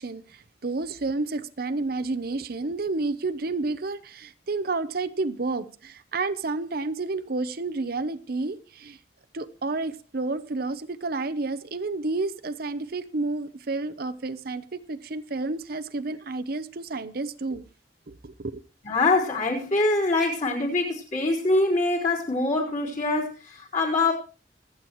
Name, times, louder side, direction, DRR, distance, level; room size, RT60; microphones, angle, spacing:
voice 1, 0.0-9.0 9.3-17.6 18.1-18.6, right 3 dB, 55° right, 0.8 m, -30 dB
voice 2, 18.8-24.1, left 2 dB, 45° left, 4.6 m, -24 dB
26.5 x 8.8 x 3.1 m
head